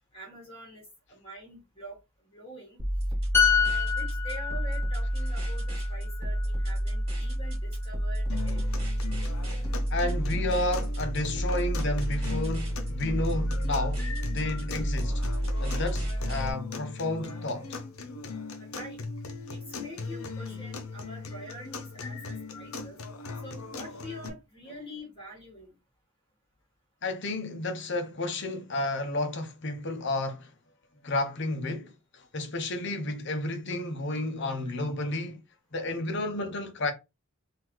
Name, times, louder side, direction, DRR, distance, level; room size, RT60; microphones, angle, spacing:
voice 1, 0.1-0.8 1.1-2.0 2.3-2.8 3.3-8.6 18.6-19.0 19.5-23.0 23.4-25.7, equal, 25° left, 1.6 m, -45 dB
sound 1, 2.8-16.5, equal, 25° right, 1.9 m, -30 dB
sound 2, 3.3-6.9 7.3-7.5, left 7 dB, 10° left, 0.4 m, -28 dB
sound 3, 8.3-24.3, left 4 dB, 90° left, 0.8 m, -39 dB
voice 2, 9.9-15.2 15.6-17.7 27.0-30.5 31.0-35.4 35.7-36.9, left 2 dB, 60° left, 0.8 m, -31 dB
3.8 x 2.7 x 3.0 m
head